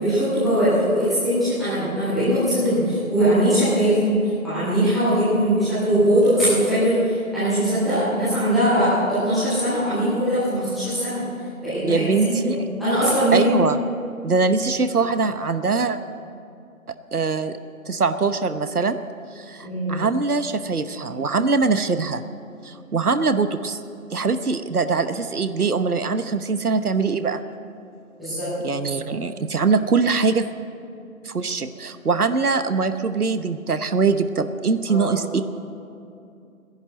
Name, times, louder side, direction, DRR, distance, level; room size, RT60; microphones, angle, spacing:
voice 1, 0.0-4.2 4.4-11.2 11.6-13.5 19.6-20.0 28.2-28.5 28.9-29.0 34.9-35.2, equal, ahead, -18 dB, 1.3 m, -21 dB
voice 2, 11.8-12.6 13.3-13.8 14.2-16.0 17.1-17.6 17.9-19.0 19.3-22.2 22.6-23.8 24.1-27.4 28.6-30.5 31.2-35.4, right 4 dB, 85° right, 10 dB, 1.1 m, -22 dB
17.0 x 11.0 x 7.6 m, 2.6 s
figure-of-eight pair, 180°, 44 cm